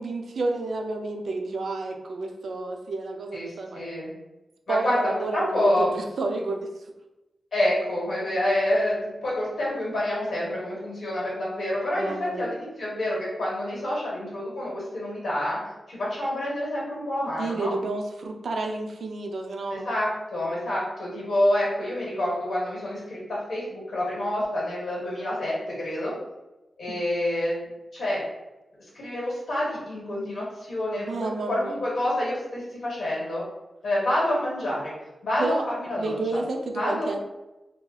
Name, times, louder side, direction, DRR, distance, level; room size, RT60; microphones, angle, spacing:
voice 1, 0.0-3.8 4.7-6.7 12.0-12.5 17.4-19.9 26.9-27.0 31.0-31.8 35.4-35.6 36.0-37.2, right 3 dB, 65° right, 3 dB, 0.4 m, -30 dB
voice 2, 3.3-4.1 4.7-5.9 7.5-15.6 15.9-17.7 19.7-26.1 26.8-27.6 27.9-28.2 28.9-33.4 33.8-34.9 35.2-36.1 36.7-37.1, left 1 dB, 55° left, -5 dB, 1.3 m, -27 dB
2.7 x 2.3 x 4.0 m, 1.0 s
wide cardioid pair, 180°, 0 cm